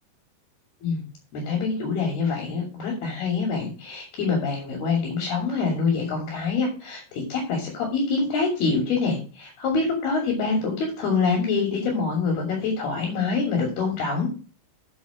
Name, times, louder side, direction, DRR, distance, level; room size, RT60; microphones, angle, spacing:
voice 1, 1.3-14.3, left 4 dB, 60° left, 0 dB, 4.4 m, -25 dB
8.3 x 7.7 x 6.2 m, 0.35 s
omnidirectional pair, 5.4 m